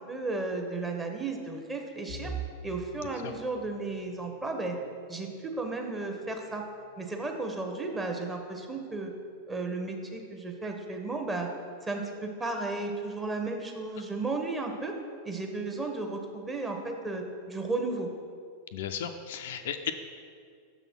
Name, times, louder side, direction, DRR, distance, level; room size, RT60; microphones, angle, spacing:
voice 1, 0.1-2.3 2.6-4.8 5.1-6.6 7.0-9.1 9.5-11.5 11.8-14.9 15.2-18.1, right 3 dB, 15° right, 2 dB, 0.8 m, -34 dB
sound 1, 2.1-13.9 14.3-14.6 15.0-15.1 16.0-16.5, right 4 dB, 55° right, 1.0 m, -49 dB
voice 2, 18.7-19.9, left 8 dB, 55° left, 7 dB, 0.3 m, -34 dB
6.6 x 4.1 x 5.7 m, 2.2 s
figure-of-eight pair, 90°, 0 cm